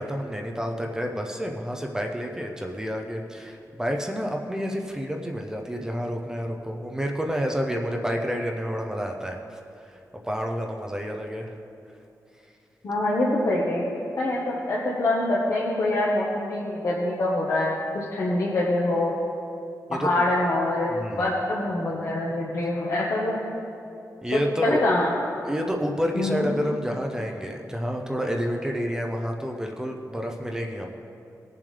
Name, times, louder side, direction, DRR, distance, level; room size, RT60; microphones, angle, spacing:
voice 1, 0.0-11.5 19.9-20.3 20.9-21.3 24.2-24.9 25.4-31.0, equal, 10° right, 1 dB, 0.6 m, -29 dB
voice 2, 12.8-13.8 14.2-19.2 19.9-20.9 21.2-23.3 24.6-25.1 26.1-26.5, left 2 dB, 55° left, -5 dB, 1.3 m, -25 dB
19.5 x 7.2 x 3.3 m, 2.6 s
wide cardioid pair, 175°, 6 cm